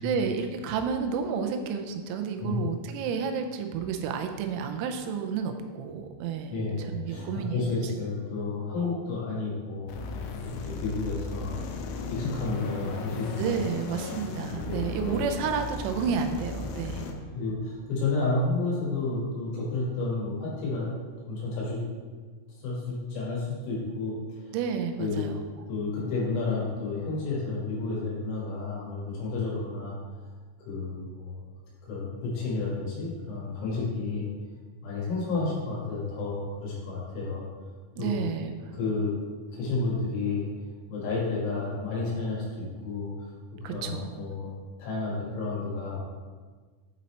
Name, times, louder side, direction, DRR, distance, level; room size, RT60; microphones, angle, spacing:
voice 1, 0.0-6.6 6.9-7.8 13.4-17.1 24.5-25.4 38.0-38.7 43.6-44.3, right 6 dB, 90° right, 5 dB, 3.4 m, -31 dB
voice 2, 6.5-9.9 10.6-11.6 12.1-13.5 14.7-15.1 17.3-20.9 21.2-21.8 22.6-24.2 25.0-25.3 25.7-30.0 30.6-31.4 31.8-34.3 34.8-37.5 38.0-38.2 38.7-39.1 39.5-40.5 40.9-43.1 43.6-44.5 44.8-46.0, left 3 dB, 70° left, -5 dB, 4.1 m, -31 dB
sound 1, 9.9-17.1, left 3 dB, 90° left, 2.7 m, -36 dB
8.8 x 4.1 x 4.2 m, 1.5 s
omnidirectional pair, 5.9 m